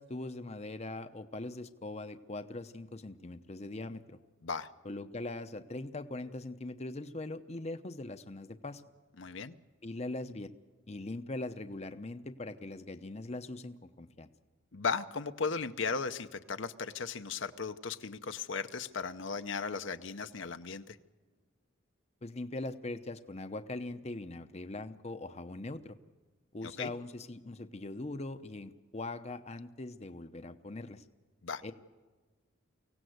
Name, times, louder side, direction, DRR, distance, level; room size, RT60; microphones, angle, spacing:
voice 1, 0.0-4.2 4.8-8.8 9.8-10.5 10.9-14.3 22.2-26.0 26.5-31.0 31.6-31.7, left 2 dB, 30° left, 10 dB, 0.7 m, -41 dB
voice 2, 9.2-9.5 14.7-21.0 26.6-26.9 31.4-31.6, left 5 dB, 65° left, 9 dB, 0.8 m, -36 dB
24.5 x 17.0 x 7.9 m, 1.4 s
head